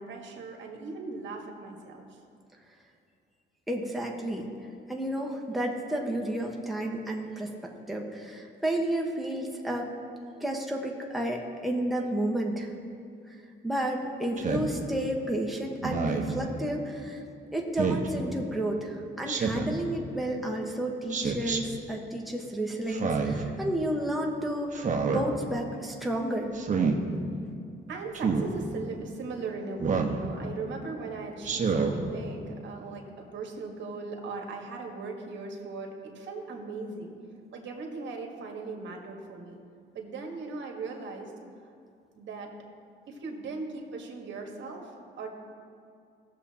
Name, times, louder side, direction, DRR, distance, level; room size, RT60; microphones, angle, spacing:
voice 1, 0.0-2.2 27.9-37.1 37.5-39.6 39.9-41.3 41.6-41.7 42.2-42.5 43.1-44.9 45.2-45.3, right 4 dB, 65° right, 1 dB, 1.6 m, -39 dB
voice 2, 3.7-4.5 4.9-9.9 10.4-12.7 13.3-13.4 13.6-17.2 17.5-26.5, right 1 dB, ahead, -1 dB, 1.2 m, -31 dB
Speech synthesizer, 14.4-14.7 15.8-16.3 17.8-18.1 19.3-19.8 21.1-21.6 22.9-23.4 24.7-25.2 26.5-27.0 28.1-28.5 29.8-30.2 31.4-31.9, right 5 dB, 40° right, 1.1 m, -28 dB
17.5 x 7.1 x 2.9 m, 2.4 s
cardioid pair, 90°, 20 cm